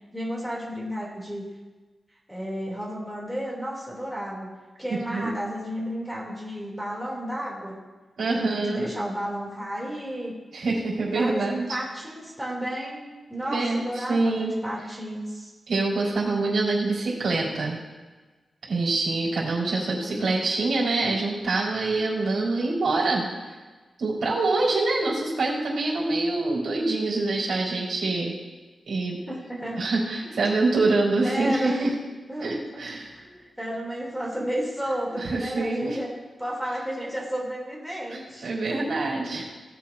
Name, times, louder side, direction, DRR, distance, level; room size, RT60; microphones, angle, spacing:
voice 1, 0.1-1.4 2.3-4.5 4.8-7.8 8.3-10.3 11.0-13.0 13.3-15.5 20.0-20.3 29.3-30.4 30.8-31.0 31.2-31.9 32.3-32.5 33.1-36.1 36.4-38.5, equal, ahead, -4 dB, 2.4 m, -32 dB
voice 2, 8.2-8.9 10.5-11.6 13.5-13.8 14.1-14.5 15.7-17.8 18.7-23.3 24.0-28.4 28.9-29.2 29.8-31.9 32.4-33.1 35.2-36.0 38.4-39.4, right 3 dB, 70° right, -4 dB, 3.8 m, -25 dB
18.0 x 8.4 x 2.5 m, 1.3 s
wide cardioid pair, 170°, 0 cm